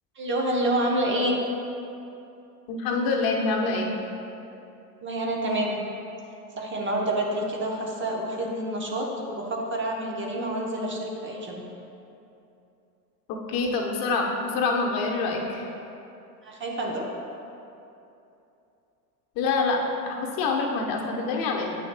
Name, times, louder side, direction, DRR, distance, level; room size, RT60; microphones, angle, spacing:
voice 1, 0.2-1.4 5.0-5.8 6.6-11.6 16.4-17.1, right 1 dB, 25° right, -1 dB, 0.8 m, -28 dB
voice 2, 2.7-3.9 13.3-15.6 19.4-21.8, left 3 dB, 45° left, 0 dB, 1.0 m, -26 dB
9.1 x 6.2 x 2.2 m, 2.8 s
hypercardioid pair, 95°, 48 cm